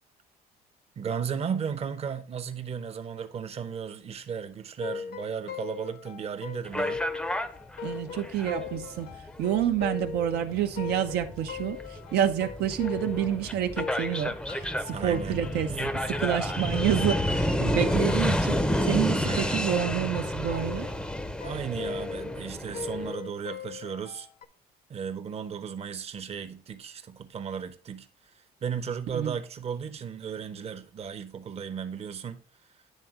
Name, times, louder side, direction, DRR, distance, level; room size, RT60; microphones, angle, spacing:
voice 1, 1.0-7.0 14.9-15.4 15.7-15.9 19.2-19.6 21.4-24.3 24.9-28.1 28.6-32.4, right 7 dB, 35° right, 0.7 m, -35 dB
sound 1, 4.8-13.5 13.8-24.4, left 6 dB, 65° left, 0.8 m, -40 dB
sound 2, 6.7-23.1, equal, 5° left, 0.6 m, -30 dB
voice 2, 7.8-20.9 29.1-29.4, right 10 dB, 75° right, 0.6 m, -29 dB
9.2 x 3.6 x 4.8 m
cardioid pair, 110°, 17 cm